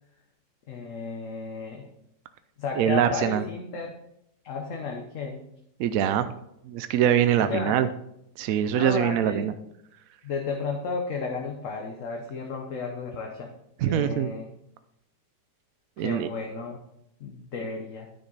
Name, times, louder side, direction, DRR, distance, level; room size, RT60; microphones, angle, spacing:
voice 1, 0.7-1.9 2.6-3.9 4.4-5.4 7.4-7.8 8.7-9.5 10.2-13.5 13.9-14.5 16.0-16.8 17.2-18.1, left 4 dB, 50° left, 1 dB, 1.2 m, -33 dB
voice 2, 2.8-3.4 5.8-6.3 6.6-7.9 8.4-9.5 13.8-14.3 16.0-16.3, right 10 dB, 75° right, 10 dB, 0.7 m, -23 dB
9.8 x 6.1 x 4.0 m, 0.78 s
omnidirectional pair, 2.0 m